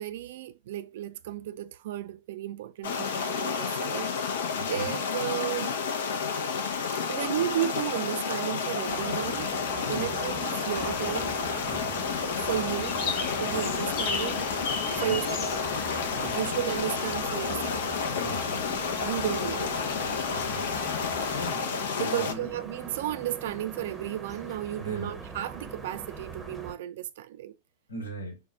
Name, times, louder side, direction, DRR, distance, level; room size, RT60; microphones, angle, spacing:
voice 1, 0.0-5.7 7.1-9.5 9.9-11.3 12.5-13.0 13.4-14.5 15.0-15.6 16.2-17.9 19.0-19.8 22.0-27.5, right 12 dB, 55° right, 0.3 m, -33 dB
sound 1, 2.8-22.3, left 5 dB, 60° left, 0.6 m, -30 dB
voice 2, 4.6-5.0 9.8-10.1 11.7-11.9 13.4-13.6 14.9-15.1 16.1-16.6 18.1-18.8 20.3-20.7 21.3-21.7 22.0-22.5 24.8-25.2 27.9-28.4, equal, 75° left, 1.2 m, -39 dB
sound 2, 8.9-26.7, right 3 dB, 15° right, 0.8 m, -42 dB
sound 3, 10.8-21.5, left 4 dB, 40° left, 1.0 m, -39 dB
4.3 x 2.2 x 4.2 m
figure-of-eight pair, 90°, 0 cm